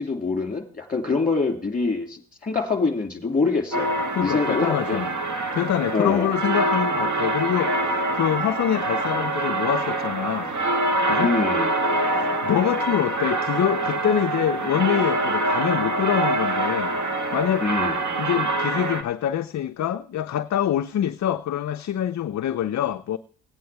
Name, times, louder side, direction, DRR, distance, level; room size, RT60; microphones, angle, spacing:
voice 1, 0.0-3.9 4.2-5.0 5.9-6.3 11.2-11.7 17.6-18.0, left 4 dB, 15° left, 2.6 m, -25 dB
sound 1, 3.7-19.0, right 2 dB, 35° right, 1.7 m, -25 dB
voice 2, 4.2-5.1 5.5-10.5 11.1-11.3 12.2-17.0 17.3-17.7 18.2-23.2, left 10 dB, 35° left, 0.5 m, -25 dB
16.5 x 9.3 x 3.4 m
hypercardioid pair, 50°, 49 cm